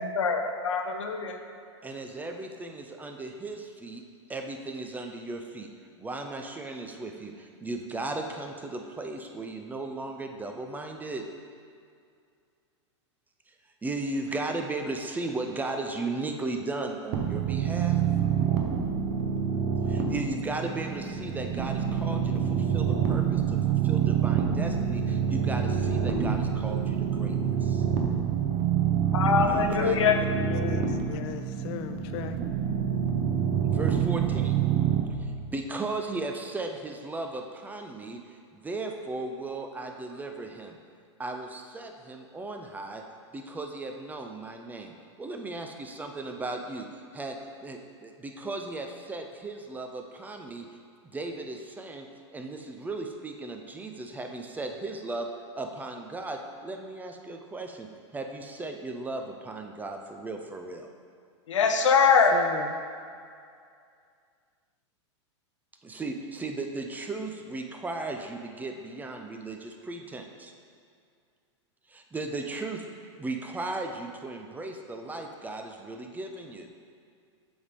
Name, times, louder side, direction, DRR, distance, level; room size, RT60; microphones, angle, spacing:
voice 1, 0.0-1.4 29.1-30.2 61.5-62.3, left 6 dB, 90° left, 4 dB, 0.7 m, -23 dB
voice 2, 1.8-4.0 4.3-5.7 6.0-11.3 13.5-13.6 13.8-18.0 19.9-27.8 29.4-30.3 33.6-34.6 35.2-38.2 38.5-40.8 41.2-43.0 43.3-44.9 45.2-50.7 51.0-52.1 52.3-55.3 55.6-60.9 65.8-70.5 71.9-72.8 73.2-76.7, right 2 dB, 10° right, 4 dB, 0.4 m, -36 dB
sound 1, 17.1-35.0, right 8 dB, 45° right, 0.8 m, -27 dB
voice 3, 30.3-32.4 62.3-62.7, left 10 dB, 45° left, 9 dB, 0.4 m, -37 dB
7.0 x 3.5 x 5.1 m, 2.3 s
hypercardioid pair, 120°, 15 cm